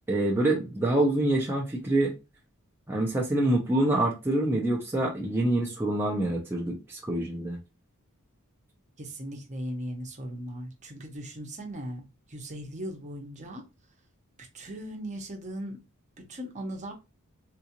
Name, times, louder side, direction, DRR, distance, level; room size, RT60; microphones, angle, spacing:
voice 1, 0.1-2.1 2.9-7.6, right 1 dB, 10° right, 0.5 m, -26 dB
voice 2, 9.0-12.0 12.3-13.6 14.5-15.8 16.3-16.9, equal, 35° right, 0.8 m, -38 dB
3.7 x 2.4 x 2.9 m
head